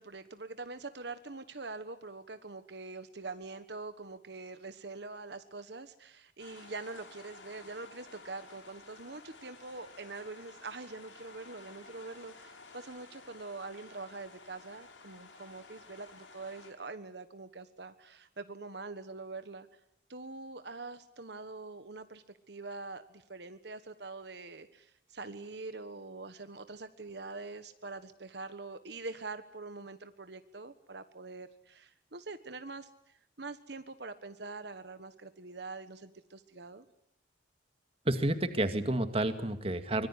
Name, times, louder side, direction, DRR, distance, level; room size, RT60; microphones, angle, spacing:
voice 1, 0.0-19.7 20.1-36.8, right 3 dB, 60° right, 10 dB, 1.4 m, -44 dB
sound 1, 6.4-16.7, left 3 dB, 90° left, 7.0 m, -53 dB
voice 2, 38.1-40.1, right 1 dB, 30° right, 9 dB, 2.1 m, -30 dB
25.0 x 22.5 x 9.9 m, 0.73 s
head